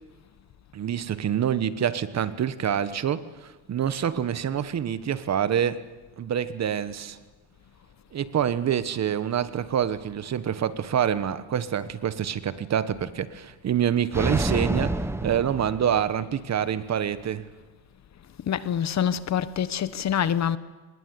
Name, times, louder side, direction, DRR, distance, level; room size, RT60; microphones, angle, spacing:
voice 1, 0.7-5.8 6.2-7.2 8.1-17.5, right 9 dB, 35° right, 1.3 m, -26 dB
sound 1, 14.1-16.3, right 2 dB, 5° right, 1.1 m, -28 dB
voice 2, 18.5-20.6, left 9 dB, 35° left, 1.1 m, -25 dB
25.0 x 21.0 x 9.7 m
cardioid pair, 125°, 45 cm